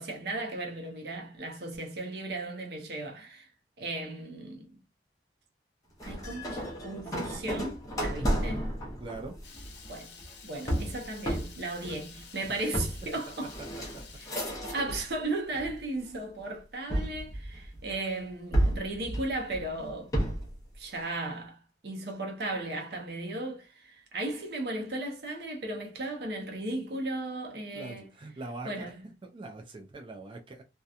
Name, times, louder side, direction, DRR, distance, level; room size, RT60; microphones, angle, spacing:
voice 1, 0.0-3.5 3.8-4.7 6.0-8.7 9.8-10.1 10.4-13.5 14.7-20.1 20.8-28.1 28.7-28.9, right 2 dB, 60° right, 0.7 m, -36 dB
sound 1, 6.0-15.2 15.5-16.2 16.9-18.0 18.5-20.6, right 1 dB, 20° left, 0.7 m, -32 dB
voice 2, 8.1-8.4 9.0-9.4 13.6-13.7 13.9-14.0 27.7-28.8 29.2-30.6, right 2 dB, 30° right, 0.3 m, -42 dB
Water tap faucet / Liquid, 9.4-14.6, left 6 dB, 75° left, 0.7 m, -51 dB
2.7 x 2.2 x 2.3 m
head